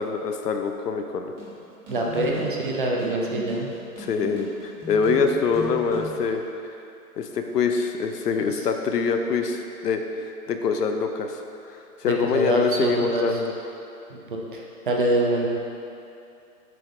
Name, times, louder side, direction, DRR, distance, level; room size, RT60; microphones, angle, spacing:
voice 1, 0.0-1.3 4.0-6.4 7.2-11.4 11.7-13.5, left 5 dB, 85° left, 5 dB, 0.7 m, -25 dB
sound 1, 1.4-6.4, equal, 20° right, 1.2 m, -39 dB
voice 2, 1.9-3.7 12.1-13.3 14.1-15.5, right 2 dB, 35° right, -1 dB, 0.5 m, -25 dB
7.7 x 3.5 x 3.6 m, 2.6 s
hypercardioid pair, 155°, 47 cm